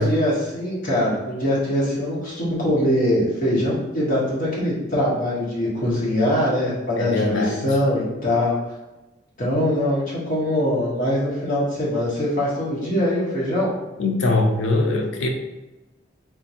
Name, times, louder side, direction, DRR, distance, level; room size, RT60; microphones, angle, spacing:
voice 1, 0.0-8.6 9.4-13.7, left 1 dB, 45° left, -7 dB, 1.2 m, -22 dB
voice 2, 7.0-7.7 14.0-15.3, left 2 dB, 90° left, 2 dB, 0.5 m, -22 dB
3.6 x 2.5 x 2.8 m, 1.0 s
head